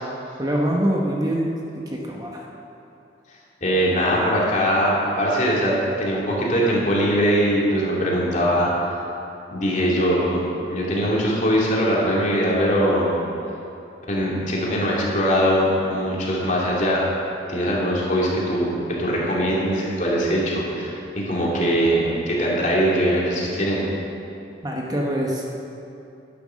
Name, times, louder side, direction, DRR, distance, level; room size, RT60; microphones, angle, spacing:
voice 1, 0.4-1.5 1.9-2.4 24.6-25.6, right 1 dB, 20° right, -1 dB, 1.0 m, -24 dB
voice 2, 3.6-8.9 9.5-10.4 10.7-13.2 14.1-17.1 17.5-23.8, equal, 40° left, -4 dB, 2.5 m, -21 dB
10.5 x 9.4 x 6.3 m, 2.7 s
head